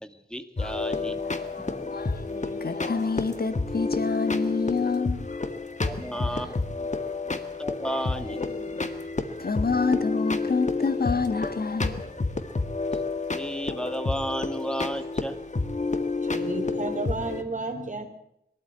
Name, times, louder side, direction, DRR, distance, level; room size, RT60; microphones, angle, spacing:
voice 1, 0.0-1.9 5.9-6.9 7.2-8.9 12.9-13.0 13.3-15.4, equal, 5° left, 2.1 m, -34 dB
sound 1, 0.6-17.4, left 3 dB, 50° left, 1.8 m, -30 dB
voice 2, 1.2-5.4 5.9-6.5 7.9-8.0 8.4-8.9 9.4-12.4, left 4 dB, 70° left, 1.4 m, -29 dB
voice 3, 16.2-18.1, right 3 dB, 50° right, 3.5 m, -32 dB
22.5 x 13.5 x 9.1 m
wide cardioid pair, 65°, 16 cm